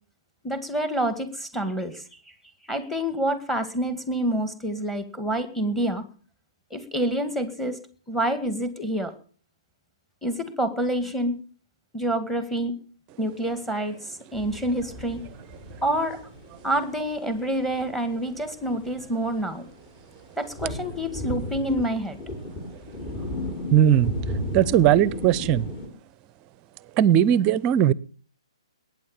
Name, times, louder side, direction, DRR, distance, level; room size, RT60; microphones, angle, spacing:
voice 1, 0.4-2.0 2.7-6.1 6.7-7.8 8.1-9.1 10.2-11.4 11.9-12.7 13.2-14.0 14.3-15.2 15.8-16.2 16.6-19.7 20.4-22.2, right 1 dB, 5° left, 2.1 m, -27 dB
sound 1, 14.3-25.9, left 1 dB, 25° left, 3.5 m, -35 dB
voice 2, 23.7-24.1 24.5-25.7 27.0-27.9, right 10 dB, 25° right, 0.6 m, -18 dB
20.5 x 9.4 x 7.2 m
hypercardioid pair, 135°, 3 cm